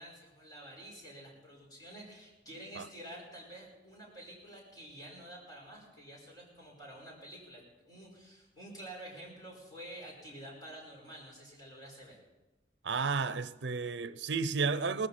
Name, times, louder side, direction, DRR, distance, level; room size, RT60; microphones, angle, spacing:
voice 1, 0.0-12.2, right 1 dB, 20° left, 5.2 m, -49 dB
voice 2, 12.8-15.1, right 4 dB, 80° right, 0.6 m, -32 dB
18.5 x 15.0 x 4.3 m
head